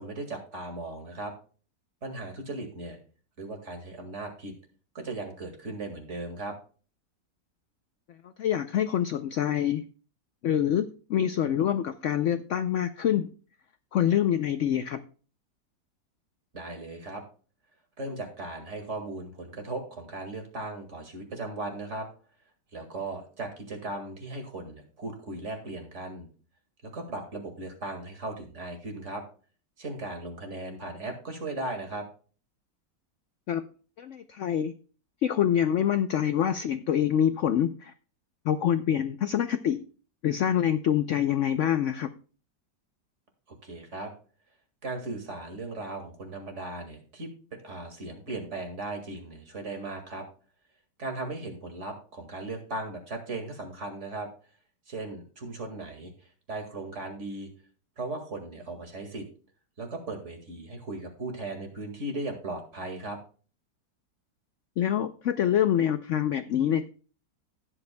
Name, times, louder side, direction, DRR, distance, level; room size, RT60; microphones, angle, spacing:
voice 1, 0.0-1.3 2.0-3.0 3.4-4.5 4.9-6.5 16.5-17.2 18.0-22.1 22.7-26.3 26.9-29.2 29.8-32.0 43.6-44.1 44.8-47.3 47.6-50.2 51.0-54.3 54.9-56.1 56.5-57.5 58.0-59.2 59.8-63.2, right 2 dB, 40° right, 4 dB, 2.2 m, -37 dB
voice 2, 8.4-9.8 10.4-13.3 13.9-15.0 33.5-33.6 34.0-34.7 35.2-37.9 38.4-39.8 40.2-42.1 64.8-66.8, left 10 dB, 80° left, 10 dB, 0.6 m, -26 dB
18.5 x 7.9 x 2.2 m, 0.39 s
omnidirectional pair, 1.9 m